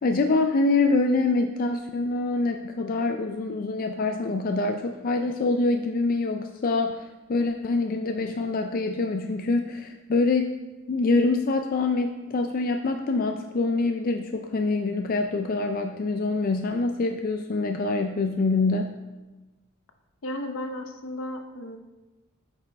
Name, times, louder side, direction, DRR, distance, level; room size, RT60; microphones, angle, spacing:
voice 1, 0.0-10.5 10.9-18.9, left 3 dB, 45° left, 5 dB, 0.4 m, -25 dB
voice 2, 20.2-21.8, left 1 dB, 75° left, 6 dB, 0.9 m, -34 dB
8.8 x 5.3 x 4.1 m, 1.1 s
head